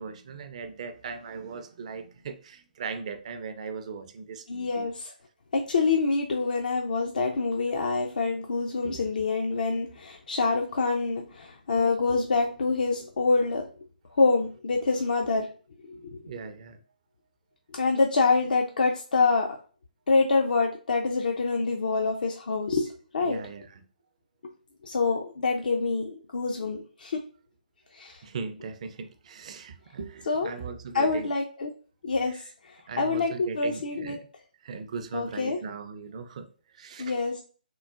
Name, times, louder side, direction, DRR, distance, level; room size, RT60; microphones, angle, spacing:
voice 1, 0.0-4.9 8.8-9.3 16.2-16.8 23.2-23.8 28.2-31.3 32.9-34.3 34.6-36.5 36.7-37.3, right 5 dB, 45° right, 0.4 m, -39 dB
voice 2, 4.5-5.1 5.5-13.7 14.2-15.5 15.9-16.1 17.7-19.6 20.1-23.4 24.8-27.2 27.9-28.2 30.3-30.5 30.9-31.7 32.0-34.2 35.1-35.6 37.0-37.4, left 4 dB, 65° left, 0.4 m, -26 dB
3.7 x 2.1 x 2.3 m
figure-of-eight pair, 140°, 5 cm